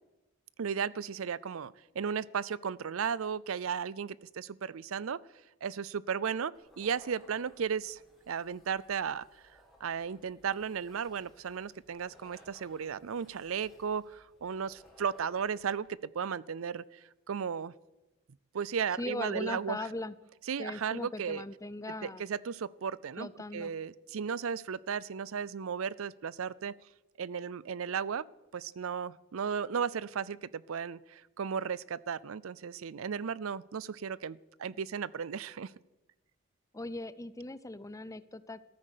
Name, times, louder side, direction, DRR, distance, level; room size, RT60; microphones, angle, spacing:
voice 1, 0.6-5.2 5.6-8.0 8.3-9.2 9.8-17.7 18.5-19.8 20.5-21.4 22.0-26.7 27.2-28.3 28.5-35.7, right 7 dB, 90° right, 22 dB, 0.5 m, -35 dB
sound 1, 6.5-15.9, equal, ahead, 4.0 m, -61 dB
voice 2, 19.0-20.1 20.6-22.2 23.2-23.7 36.7-38.6, left 2 dB, 15° left, 16 dB, 0.6 m, -39 dB
15.0 x 13.0 x 6.5 m, 1.0 s
head